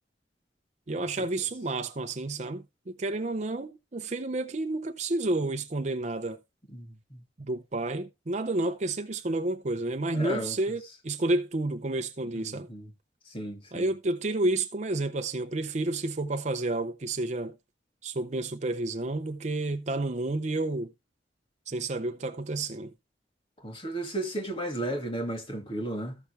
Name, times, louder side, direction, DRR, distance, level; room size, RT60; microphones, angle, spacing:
voice 1, 0.9-6.4 7.4-12.7 13.7-17.5 18.0-20.9 21.7-22.9, right 2 dB, 40° right, 0.6 m, -30 dB
voice 2, 10.1-10.5 12.5-12.9 13.3-13.9 23.6-26.2, right 1 dB, 30° left, 2.3 m, -33 dB
14.5 x 6.1 x 3.2 m
head